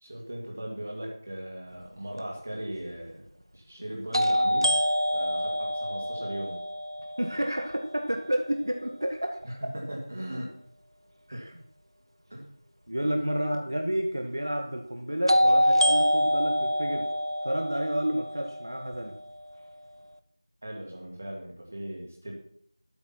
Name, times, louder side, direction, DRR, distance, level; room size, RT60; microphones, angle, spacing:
voice 1, 0.0-3.3 3.5-4.7 5.1-6.6 9.4-10.5 11.3-11.4 12.3-12.5 20.6-22.3, right 1 dB, 20° right, -1 dB, 2.3 m, -38 dB
sound 1, 2.2-2.3 4.1-8.0 15.3-19.3, equal, 90° right, 1.3 m, -26 dB
voice 2, 7.2-9.6 11.3-11.5 12.9-17.1 17.4-19.2, equal, 45° right, 3 dB, 1.5 m, -30 dB
12.5 x 9.0 x 6.0 m, 0.66 s
figure-of-eight pair, 175°, 2 cm